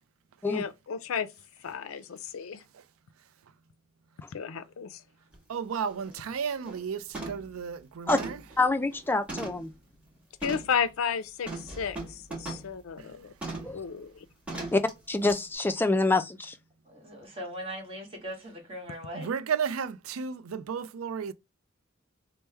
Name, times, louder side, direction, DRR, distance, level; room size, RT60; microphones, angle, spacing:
voice 1, 0.4-1.3 1.6-2.6 4.3-5.0 10.4-13.3 13.7-14.3, left 7 dB, 85° left, 0.4 m, -33 dB
sound 1, 5.3-5.4 5.9-6.1 6.5-6.8 7.1-7.5 8.1-9.7 10.4-10.8 11.5-12.7 13.4-13.8 14.5-14.9 15.3-15.4, right 2 dB, 5° right, 1.6 m, -39 dB
voice 2, 5.5-8.4 13.0-13.2 19.1-21.3, right 6 dB, 90° right, 0.4 m, -33 dB
voice 3, 8.6-9.7 13.6-13.8 14.7-16.6, left 3 dB, 10° left, 0.3 m, -26 dB
voice 4, 16.8-19.3, equal, 30° right, 1.5 m, -40 dB
3.4 x 2.1 x 4.3 m
head